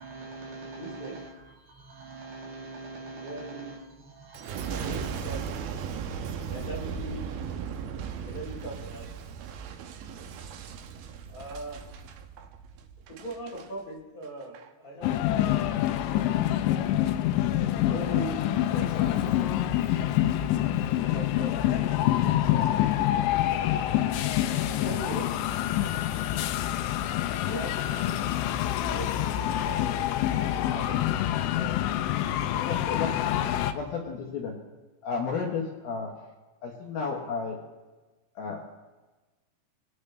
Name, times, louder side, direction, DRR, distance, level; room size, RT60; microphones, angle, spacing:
voice 1, 0.0-5.1, right 3 dB, 65° right, -3 dB, 4.4 m, -43 dB
voice 2, 0.7-1.1 3.2-3.8 4.5-5.5 6.5-7.2 8.2-9.1 11.3-11.8 13.1-15.7 17.6-18.4 18.7-19.5 21.1-23.1 24.6-25.3 25.7-25.8 27.3-28.2 28.7-30.0 30.7-31.0 31.5-31.7, right 2 dB, 20° left, -6 dB, 3.4 m, -40 dB
Boom, 4.3-13.7 14.2-14.7, right 7 dB, 90° right, 2.1 m, -37 dB
sound 1, 15.0-33.7, left 12 dB, 85° left, 2.9 m, -26 dB
voice 3, 32.4-33.4 33.7-34.6 35.0-36.1 36.6-37.6 38.4-38.6, left 5 dB, 65° left, -1 dB, 2.7 m, -33 dB
21.5 x 9.5 x 3.3 m, 1.2 s
omnidirectional pair, 5.3 m